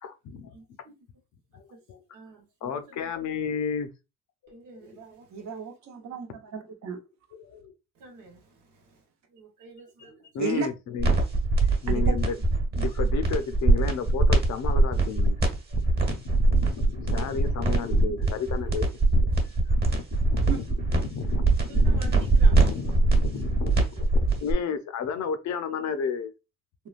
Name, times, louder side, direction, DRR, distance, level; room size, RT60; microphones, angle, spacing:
voice 1, 0.0-0.5 1.5-1.6 1.9-2.0 2.6-3.9 4.4-4.9 7.3-7.7 10.0-11.2 11.6-12.4 12.7-15.4 15.7-19.3 19.7-20.6 20.9-26.3, left 6 dB, 65° left, 0.7 m, -33 dB
voice 2, 0.5-1.0 1.5-1.8 2.1-3.1 4.5-5.4 7.9-9.0 9.3-10.3 21.7-23.1, right 3 dB, 90° right, 1.2 m, -50 dB
voice 3, 5.3-7.0 10.4-10.7 11.9-12.2 17.2-17.3 20.5-20.6, right 6 dB, 65° right, 0.9 m, -33 dB
sound 1, 11.0-24.5, right 2 dB, 35° right, 1.2 m, -22 dB
3.6 x 2.2 x 2.4 m
cardioid pair, 90°, 30 cm